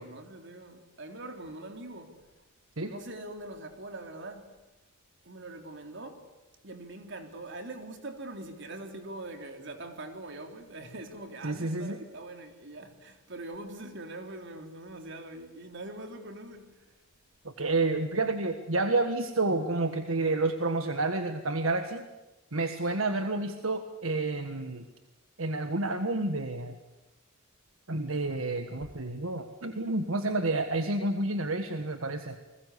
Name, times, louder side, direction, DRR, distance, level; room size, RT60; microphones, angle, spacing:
voice 1, 0.0-2.2 2.8-4.5 5.2-6.2 6.6-17.0 28.8-28.9, right 2 dB, 60° right, 3.6 m, -43 dB
voice 2, 11.4-12.0 17.4-22.0 22.5-24.9 25.4-26.8 27.9-32.4, right 2 dB, 80° right, 1.6 m, -29 dB
29.5 x 21.5 x 8.4 m
head